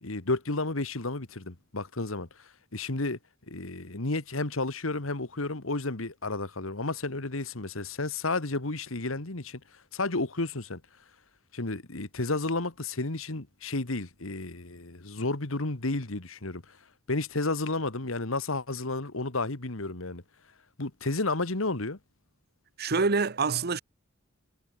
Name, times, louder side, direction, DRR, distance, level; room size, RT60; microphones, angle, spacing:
voice 1, 0.0-3.2 3.5-9.6 9.9-10.8 11.5-16.8 17.1-20.2 20.8-22.0, left 2 dB, 75° left, 2.0 m, -32 dB
voice 2, 22.8-23.8, right 4 dB, 50° right, 1.1 m, -26 dB
head